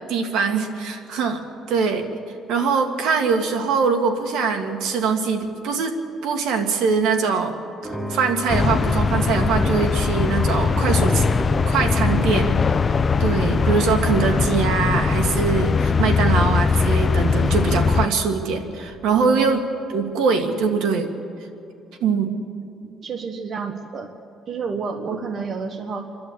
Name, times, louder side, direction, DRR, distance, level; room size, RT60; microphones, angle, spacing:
voice 1, 0.1-2.1 2.5-5.9 6.2-7.6 8.1-11.2 11.7-12.5 12.9-19.6 19.9-21.1 22.0-22.3, right 5 dB, 80° right, 6 dB, 1.9 m, -22 dB
sound 1, 7.8-14.9, left 1 dB, ahead, 0.9 m, -33 dB
sound 2, 8.5-18.1, left 4 dB, 25° left, 0.5 m, -20 dB
voice 2, 19.1-19.4 22.8-24.1 24.5-26.1, right 4 dB, 40° right, 7 dB, 1.1 m, -30 dB
28.0 x 11.5 x 8.5 m, 2.6 s
cardioid pair, 145°, 0 cm